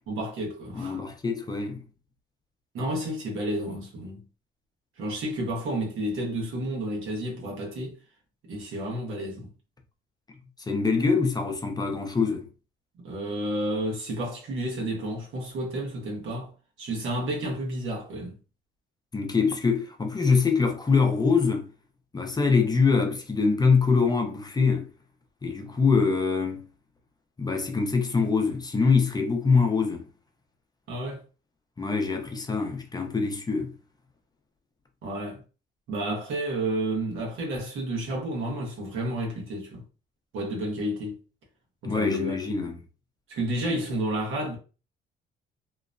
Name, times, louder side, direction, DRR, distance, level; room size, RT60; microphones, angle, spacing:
voice 1, 0.1-1.0 2.7-4.2 5.0-8.0 8.5-9.5 13.0-16.5 16.8-18.4 30.9-31.2 35.0-35.4 35.9-39.8 40.3-41.2 41.8-42.4 43.3-44.6, right 1 dB, 85° right, 1.1 m, -31 dB
voice 2, 0.7-1.8 10.7-12.5 19.1-21.7 22.1-24.9 25.4-26.7 27.4-30.1 31.8-33.7 41.8-42.8, left 4 dB, 20° left, 0.6 m, -24 dB
2.9 x 2.0 x 2.5 m
cardioid pair, 90°, 20 cm